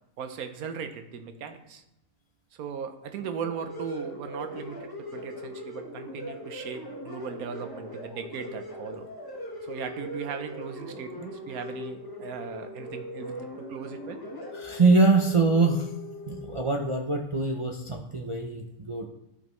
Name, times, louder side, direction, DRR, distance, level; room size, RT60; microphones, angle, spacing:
voice 1, 0.2-1.8 2.6-9.1 9.7-14.2, right 7 dB, 80° right, 7 dB, 1.2 m, -38 dB
sound 1, 3.2-16.9, left 1 dB, 20° left, 0.9 m, -40 dB
voice 2, 14.5-15.9 16.3-19.1, right 3 dB, 45° right, 0 dB, 0.4 m, -24 dB
12.0 x 5.2 x 3.1 m, 0.82 s
omnidirectional pair, 1.5 m